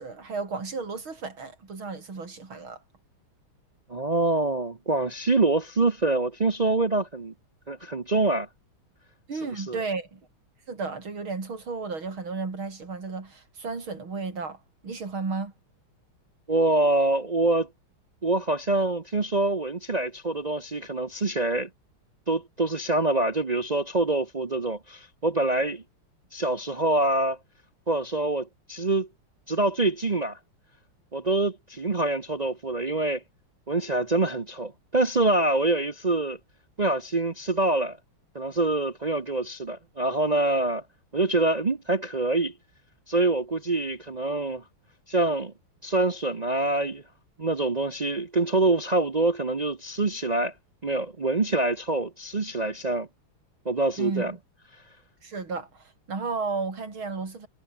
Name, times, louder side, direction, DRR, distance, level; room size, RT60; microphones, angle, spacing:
voice 1, 0.0-2.8 9.3-10.2 10.7-14.6 14.8-15.5 54.0-54.4 55.2-57.5, right 4 dB, 70° right, 5.1 m, -33 dB
voice 2, 3.9-7.3 7.7-8.5 9.4-9.8 16.5-17.7 18.2-21.7 22.3-25.8 26.3-27.4 27.9-29.1 29.5-30.4 31.1-33.2 33.7-36.4 36.8-38.0 38.3-40.8 41.1-42.5 43.1-44.6 45.1-45.5 45.8-47.0 47.4-50.5 50.8-53.1 53.6-54.3, right 2 dB, 50° right, 0.4 m, -25 dB
omnidirectional pair, 2.4 m